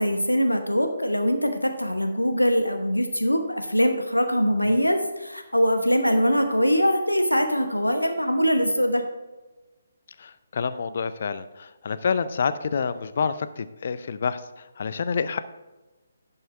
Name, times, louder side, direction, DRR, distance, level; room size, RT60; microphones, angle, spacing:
voice 1, 0.0-9.0, equal, 90° left, 6 dB, 0.9 m, -22 dB
voice 2, 10.2-15.4, left 6 dB, 45° left, 12 dB, 0.5 m, -28 dB
10.5 x 5.6 x 4.3 m, 1.1 s
figure-of-eight pair, 140°, 0 cm